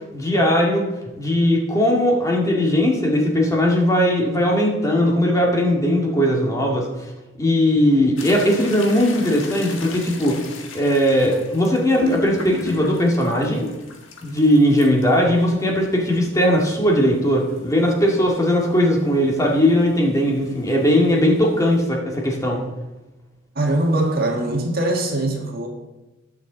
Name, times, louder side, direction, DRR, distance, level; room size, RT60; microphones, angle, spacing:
voice 1, 0.1-0.9 1.1-6.9 7.4-10.4 10.7-13.7 14.2-22.6, equal, 15° left, -1 dB, 2.0 m, -19 dB
sound 1, 8.2-21.9, left 3 dB, 80° left, 1.5 m, -36 dB
voice 2, 23.5-25.7, right 1 dB, 50° right, 1 dB, 1.7 m, -22 dB
18.5 x 6.7 x 3.9 m, 1.1 s
head